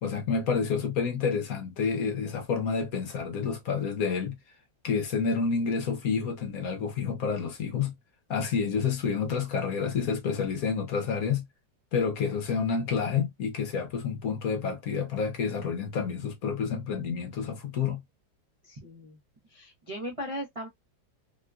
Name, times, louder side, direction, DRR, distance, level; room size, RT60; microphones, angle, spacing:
voice 1, 0.0-4.4 4.8-7.9 8.3-11.4 11.9-18.0, left 6 dB, 60° left, 1.1 m, -29 dB
voice 2, 18.6-19.2 19.5-20.7, equal, 60° right, 0.3 m, -38 dB
3.6 x 2.3 x 2.3 m
omnidirectional pair, 2.0 m